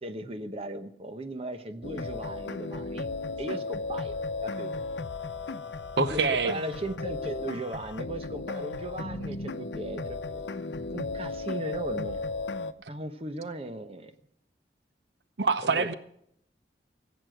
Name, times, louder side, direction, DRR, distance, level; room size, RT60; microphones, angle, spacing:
voice 1, 0.0-3.1 3.4-4.2 4.4-4.7 6.1-10.4 10.9-12.2 12.9-14.1 15.6-15.9, right 1 dB, 35° right, 1.0 m, -37 dB
sound 1, 1.8-12.7, left 3 dB, 85° left, 0.7 m, -35 dB
voice 2, 6.0-6.6 15.4-15.9, right 4 dB, 70° right, 0.7 m, -25 dB
15.5 x 8.3 x 9.1 m
head